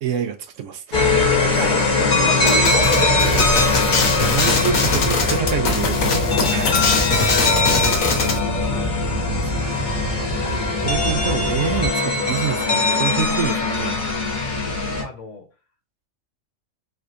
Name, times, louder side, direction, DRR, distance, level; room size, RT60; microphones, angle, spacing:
voice 1, 0.0-1.7 3.5-8.3 9.1-9.7 10.4-14.0, right 8 dB, 70° right, 0.9 m, -29 dB
sound 1, 0.9-15.0, left 3 dB, 35° left, 1.1 m, -21 dB
voice 2, 1.5-3.8 4.1-4.2 6.3-7.3 14.5-15.4, left 4 dB, 65° left, 1.4 m, -31 dB
sound 2, 2.1-11.9, equal, 5° left, 1.0 m, -28 dB
sound 3, 2.5-8.4, left 4 dB, 85° left, 1.4 m, -22 dB
4.2 x 3.1 x 2.5 m
omnidirectional pair, 1.4 m